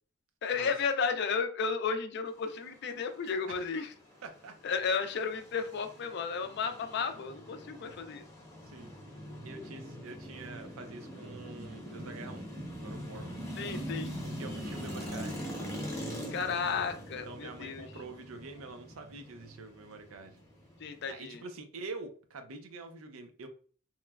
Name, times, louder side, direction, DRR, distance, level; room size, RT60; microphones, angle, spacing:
voice 1, 0.4-3.9 4.6-8.3 13.6-14.1 16.3-17.9 20.8-21.4, left 5 dB, 55° left, 8 dB, 0.3 m, -33 dB
voice 2, 3.5-3.9 4.2-4.8 8.6-9.0 9.4-12.5 12.7-13.4 14.2-15.4 17.3-20.4 21.1-23.5, right 3 dB, 85° right, 6 dB, 0.5 m, -46 dB
sound 1, 4.3-21.1, equal, 15° left, 0.7 m, -42 dB
3.0 x 2.1 x 2.3 m, 0.41 s
head